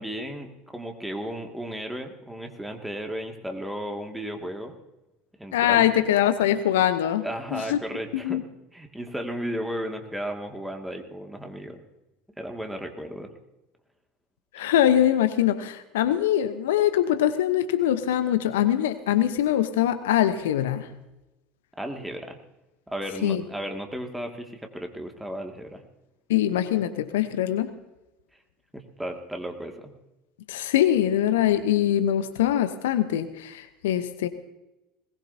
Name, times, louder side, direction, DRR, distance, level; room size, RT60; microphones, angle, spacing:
voice 1, 0.0-4.7 5.4-5.9 7.2-8.4 8.7-11.8 12.4-13.3 21.8-22.4 22.9-25.8 28.7-29.9, equal, 5° right, 3 dB, 2.2 m, -34 dB
voice 2, 5.5-7.2 7.5-7.8 8.2-8.4 14.5-20.9 23.2-23.4 26.3-27.7 30.5-34.3, left 11 dB, 70° left, 10 dB, 0.9 m, -23 dB
20.5 x 19.0 x 2.8 m, 0.97 s
hypercardioid pair, 75°, 0 cm